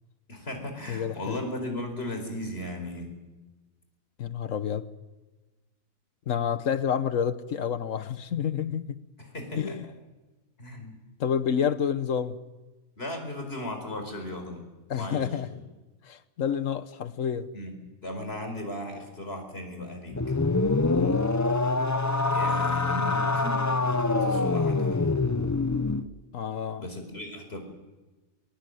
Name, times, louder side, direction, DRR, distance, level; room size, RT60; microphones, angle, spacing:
voice 1, 0.3-3.1 9.2-9.8 10.6-11.0 13.0-14.7 14.9-15.6 17.5-20.2 22.3-23.8 24.2-25.0 26.8-27.6, left 1 dB, 45° left, 4.9 m, -36 dB
voice 2, 0.9-1.4 4.2-4.9 6.3-9.0 9.6-9.9 11.2-12.4 14.9-15.5 16.0-17.5 20.9-21.2 26.3-26.9, left 8 dB, 70° left, 1.4 m, -29 dB
sound 1, 20.1-26.1, left 3 dB, 20° left, 0.5 m, -25 dB
22.5 x 22.0 x 7.9 m
omnidirectional pair, 1.4 m